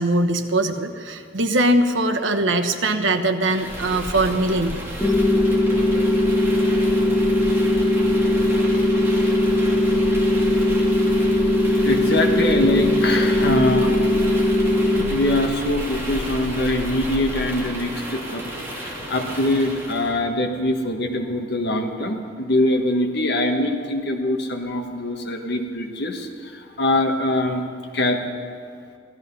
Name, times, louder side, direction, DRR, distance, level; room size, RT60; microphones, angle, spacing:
voice 1, 0.0-4.8, right 1 dB, 80° right, 6 dB, 1.1 m, -21 dB
sound 1, 3.5-20.2, equal, 15° right, 2.8 m, -32 dB
sound 2, 5.0-15.0, left 1 dB, 10° left, 1.1 m, -19 dB
voice 2, 11.8-14.2 15.1-18.4 19.1-26.3 26.8-27.6 27.9-28.2, left 1 dB, 60° left, 3 dB, 1.6 m, -23 dB
16.0 x 14.0 x 5.6 m, 2.3 s
head